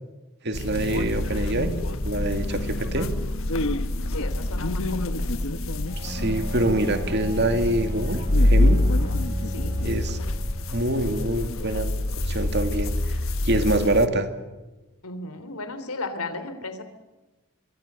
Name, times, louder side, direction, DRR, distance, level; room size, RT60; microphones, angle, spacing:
voice 1, 0.4-1.7 2.0-3.1 6.0-8.2 8.4-8.8 9.8-10.2 10.7-11.9 12.3-13.1 13.4-14.3, right 1 dB, 50° right, 7 dB, 2.5 m, -25 dB
sound 1, 0.5-14.1, left 1 dB, 65° left, 1.4 m, -26 dB
voice 2, 4.1-5.2 9.5-9.8 15.0-16.8, left 3 dB, 85° left, 10 dB, 3.6 m, -35 dB
Bowed string instrument, 5.9-11.2, equal, 15° right, 5.1 m, -36 dB
27.5 x 23.0 x 7.0 m, 1.1 s
head